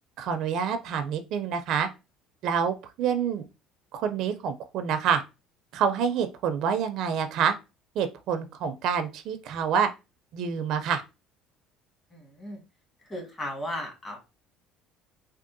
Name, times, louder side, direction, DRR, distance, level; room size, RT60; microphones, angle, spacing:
voice 1, 0.2-1.9 2.4-3.4 3.9-5.2 5.7-7.5 8.0-9.9 10.3-11.0, right 7 dB, 65° right, 0.4 m, -27 dB
voice 2, 12.1-12.6 13.1-14.2, left 1 dB, 25° left, 1.3 m, -35 dB
3.5 x 2.3 x 2.5 m
cardioid pair, 120°, 0 cm